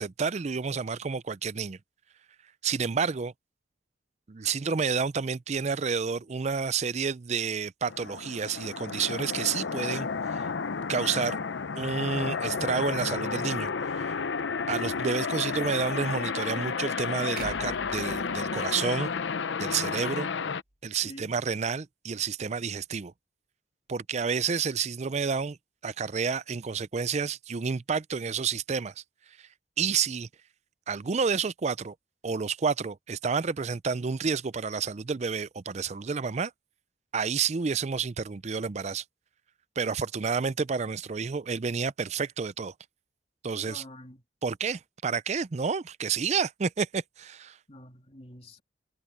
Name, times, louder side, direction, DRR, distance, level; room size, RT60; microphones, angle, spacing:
voice 1, 0.0-1.8 2.6-3.3 4.3-10.1 10.9-11.4 11.8-14.2 14.7-19.1 19.6-20.3 20.8-23.1 23.9-25.6 25.8-28.9 29.8-30.3 30.9-31.9 32.2-36.5 37.1-39.0 39.8-42.7 43.4-43.8 44.4-47.6, right 5 dB, 35° right, 0.4 m, -30 dB
sound 1, 7.9-20.6, left 5 dB, 80° left, 0.7 m, -32 dB
sound 2, 17.4-19.6, right 3 dB, 55° right, 6.7 m, -45 dB
voice 2, 21.0-21.4 43.7-44.2 47.7-48.6, left 1 dB, 35° left, 3.4 m, -47 dB
head